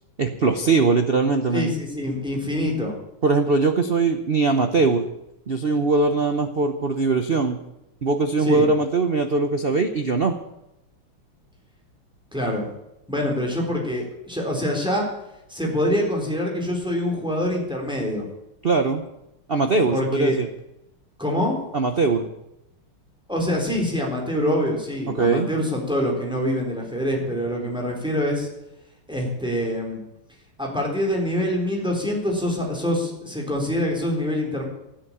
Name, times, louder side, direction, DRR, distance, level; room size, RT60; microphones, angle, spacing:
voice 1, 0.2-1.7 3.2-5.1 5.5-7.6 8.0-10.4 18.6-19.0 19.5-20.5 21.7-22.3 25.1-25.5, right 3 dB, 75° right, 7 dB, 0.5 m, -21 dB
voice 2, 1.5-2.9 8.4-8.7 12.3-12.7 13.1-15.1 15.5-18.3 19.9-20.4 21.2-21.6 23.3-28.5 29.1-30.0 30.6-34.7, left 1 dB, ahead, -1 dB, 3.8 m, -25 dB
13.0 x 10.5 x 8.7 m, 0.88 s
omnidirectional pair, 2.4 m